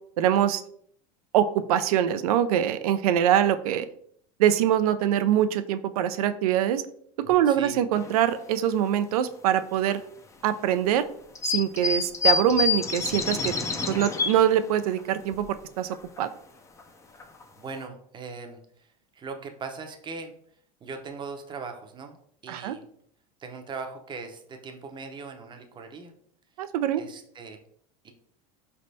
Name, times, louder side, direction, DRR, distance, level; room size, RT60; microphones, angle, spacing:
voice 1, 0.2-0.6 1.3-3.9 4.4-6.8 7.3-10.0 10.4-11.1 11.4-13.5 13.9-15.5 15.8-16.3 22.5-22.8 26.6-27.0, right 10 dB, 85° right, 11 dB, 0.4 m, -23 dB
voice 2, 7.2-7.8 17.6-18.9 19.1-20.3 20.8-22.2 22.4-22.8 23.4-26.1 27.0-27.6 28.0-28.1, right 4 dB, 25° right, 5 dB, 0.6 m, -39 dB
sound 1, 7.9-8.2 8.8-8.9 9.9-10.0 11.3-14.5 15.0-15.1 15.3-15.4 15.9-16.2 16.8-16.9 17.2-17.4 17.8-17.9, left 5 dB, 15° left, 0.4 m, -27 dB
4.2 x 3.3 x 2.7 m, 0.65 s
supercardioid pair, 110°, 19 cm